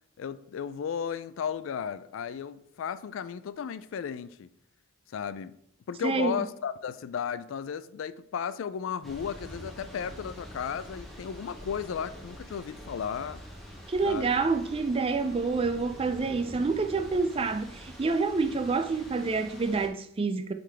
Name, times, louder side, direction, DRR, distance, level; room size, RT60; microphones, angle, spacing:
voice 1, 0.2-4.5 5.1-5.5 5.9-13.4 14.0-14.3, left 7 dB, 75° left, 0.3 m, -34 dB
voice 2, 6.0-6.4 13.9-20.5, right 4 dB, 30° right, 0.4 m, -28 dB
Thunder / Rain, 9.0-19.9, equal, ahead, 1.2 m, -46 dB
7.5 x 3.9 x 3.3 m
head